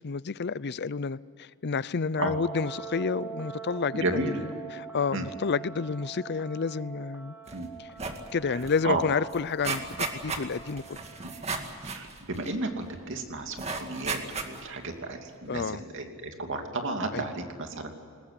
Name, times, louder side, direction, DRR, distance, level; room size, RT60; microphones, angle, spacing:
voice 1, 0.0-4.4 4.7-7.4 7.8-7.9 8.3-11.0 15.5-15.8 17.1-17.2, left 5 dB, 50° left, 0.6 m, -30 dB
sound 1, 2.2-11.9, right 6 dB, 10° right, 1.7 m, -44 dB
voice 2, 3.9-4.4 5.1-5.3 7.5-7.7 8.8-9.0 11.2-11.3 11.8-17.9, right 2 dB, 60° right, 2.8 m, -33 dB
sound 2, 7.5-7.6 7.9-8.3 8.6-8.7 9.0-13.0 13.6-14.8 15.3-15.4, right 4 dB, 30° right, 2.2 m, -35 dB
21.0 x 20.0 x 10.0 m
head